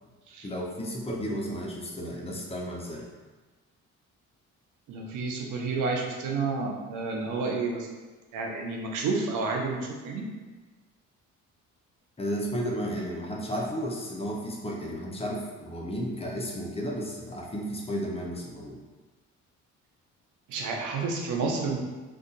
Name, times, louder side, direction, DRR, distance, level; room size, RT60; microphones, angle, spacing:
voice 1, 0.4-3.0 12.2-18.8, equal, 20° left, -2 dB, 0.7 m, -33 dB
voice 2, 4.9-7.9 8.3-10.3 20.5-21.8, right 4 dB, 85° right, 1 dB, 0.6 m, -30 dB
2.6 x 2.4 x 3.9 m, 1.3 s
cardioid pair, 90°, 30 cm